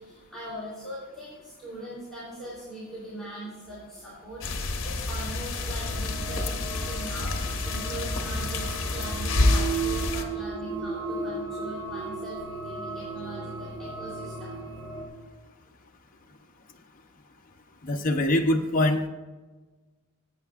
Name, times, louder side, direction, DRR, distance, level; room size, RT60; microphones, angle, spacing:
voice 1, 0.0-14.5, right 1 dB, ahead, -10 dB, 3.2 m, -41 dB
sound 1, 4.4-10.2, left 2 dB, 60° left, 1.1 m, -28 dB
sound 2, 5.6-15.1, right 4 dB, 25° right, 1.6 m, -36 dB
voice 2, 17.8-19.1, left 1 dB, 40° left, 2 dB, 0.7 m, -23 dB
16.0 x 8.2 x 2.4 m, 1.3 s
head